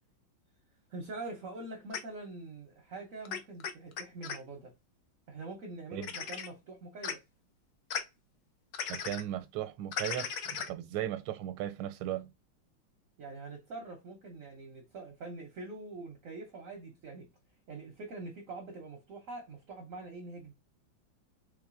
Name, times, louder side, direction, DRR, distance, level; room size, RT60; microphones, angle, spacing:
voice 1, 0.9-4.7 5.3-7.2 13.2-17.3 17.7-20.5, right 3 dB, 65° right, 0.8 m, -44 dB
sound 1, 1.9-2.0 3.2-4.4 6.0-6.5 7.0-7.1 7.9-8.0 8.7-9.2 9.9-10.7, left 7 dB, 70° left, 0.9 m, -36 dB
voice 2, 8.9-12.3, right 12 dB, 85° right, 1.4 m, -37 dB
3.7 x 3.3 x 2.5 m
omnidirectional pair, 2.3 m